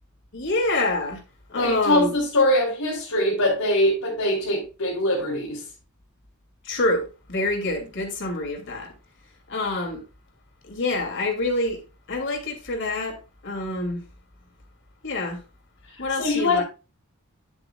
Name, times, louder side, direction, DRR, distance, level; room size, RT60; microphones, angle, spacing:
voice 1, 0.3-1.2 1.5-2.2 6.6-8.9 9.5-10.0 10.6-11.8 12.1-14.0 15.0-15.4 16.0-16.6, left 2 dB, 55° left, 2.6 m, -26 dB
voice 2, 1.6-5.6 16.2-16.6, left 1 dB, 85° left, 3.0 m, -22 dB
9.7 x 8.2 x 2.3 m
head